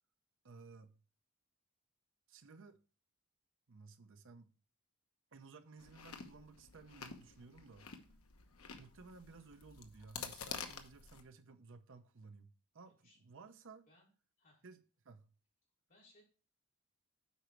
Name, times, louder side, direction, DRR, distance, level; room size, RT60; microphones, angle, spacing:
voice 1, 0.4-1.0 2.3-2.8 3.7-4.5 5.3-7.9 8.8-13.9 14.6-14.8 15.0-15.3, right 4 dB, 60° right, 0.7 m, -57 dB
Chewing mastication, 5.8-11.2, left 6 dB, 70° left, 1.0 m, -49 dB
voice 2, 12.8-13.2 13.9-14.1 14.4-14.6 15.9-16.2, left 2 dB, 40° left, 4.1 m, -67 dB
8.3 x 5.1 x 4.5 m
head